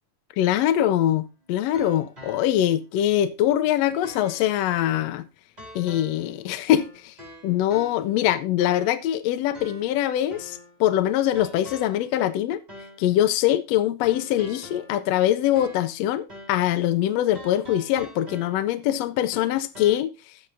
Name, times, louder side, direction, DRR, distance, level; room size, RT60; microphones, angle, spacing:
voice 1, 0.4-5.3 5.7-7.1 7.4-12.6 13.0-20.1, left 12 dB, 80° left, 1.6 m, -23 dB
sound 1, 0.8-2.8 3.3-3.4 4.0-4.6 5.6-6.3 6.7-8.2 8.6-9.1 9.5-10.8 11.3-12.1 12.7-13.1 14.0-16.0 16.3-16.7 17.3-18.9 19.3-20.0, equal, 15° right, 4.6 m, -45 dB
16.5 x 6.6 x 2.7 m
omnidirectional pair, 3.5 m